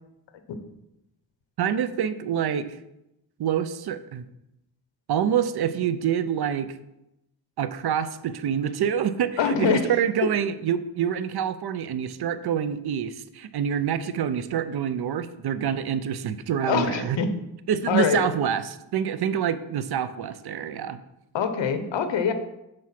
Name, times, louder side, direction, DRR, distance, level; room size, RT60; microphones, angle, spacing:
voice 1, 1.6-2.7 3.4-4.3 5.1-6.8 7.6-17.2 17.7-21.0, right 8 dB, 60° right, 13 dB, 0.6 m, -26 dB
voice 2, 9.4-9.9 16.7-17.3 17.9-18.2 21.3-22.3, left 6 dB, 75° left, 8 dB, 1.0 m, -24 dB
7.6 x 4.6 x 5.8 m, 0.88 s
wide cardioid pair, 140°, 45 cm